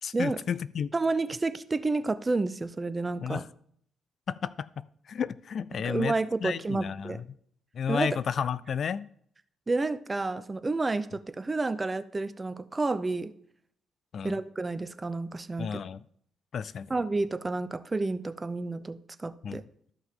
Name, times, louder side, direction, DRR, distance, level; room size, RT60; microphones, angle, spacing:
voice 1, 0.0-0.9 3.2-3.5 4.3-6.1 6.4-7.2 7.7-9.1 14.1-14.4 15.6-16.0 16.5-16.9 19.4-19.6, left 7 dB, 55° left, 18 dB, 0.4 m, -32 dB
voice 2, 0.9-3.4 5.8-7.2 7.9-8.1 9.7-13.3 14.2-15.8 16.9-19.6, right 3 dB, 25° right, 14 dB, 0.6 m, -30 dB
13.0 x 5.9 x 3.7 m, 0.63 s
cardioid pair, 90°, 0 cm